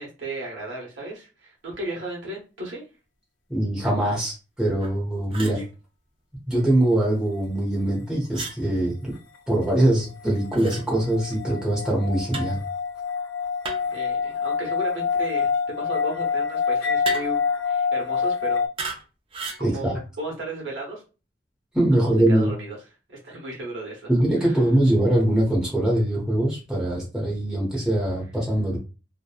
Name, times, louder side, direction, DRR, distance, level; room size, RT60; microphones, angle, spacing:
voice 1, 0.0-2.8 5.5-5.6 13.9-18.6 19.6-21.0 21.9-22.8 23.1-24.1 24.4-24.5, right 2 dB, 90° right, -3 dB, 1.0 m, -35 dB
voice 2, 3.5-5.6 6.5-9.1 9.5-12.6 19.6-19.9 21.7-22.5 24.1-28.8, right 1 dB, 5° right, -5 dB, 0.8 m, -22 dB
sound 1, 4.8-5.0 5.3-5.6 8.3-8.6 10.5-10.8 12.3-12.6 13.6-14.0 17.0-17.5 18.8-19.0 19.3-19.7, right 3 dB, 30° right, 0.4 m, -34 dB
sound 2, 10.3-18.7, left 6 dB, 85° left, 0.4 m, -26 dB
2.8 x 2.1 x 2.3 m, 0.32 s
head